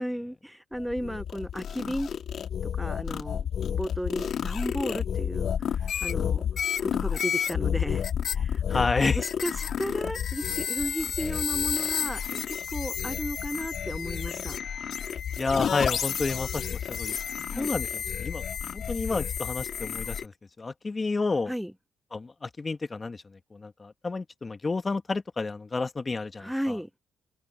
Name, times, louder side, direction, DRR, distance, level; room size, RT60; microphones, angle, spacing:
voice 1, 0.0-2.1 2.8-6.4 6.8-8.1 8.3-8.8 9.1-9.5 9.8-14.6 17.5-17.7 21.5-21.7 26.4-26.9, equal, ahead, 0.7 m, -34 dB
sound 1, 0.7-20.3, left 8 dB, 60° left, 0.7 m, -30 dB
voice 2, 8.7-9.2 15.4-17.1 17.6-18.4 18.7-20.3 20.6-21.5 22.1-26.7, left 3 dB, 25° left, 1.6 m, -30 dB
cardioid pair, 90°, 0 cm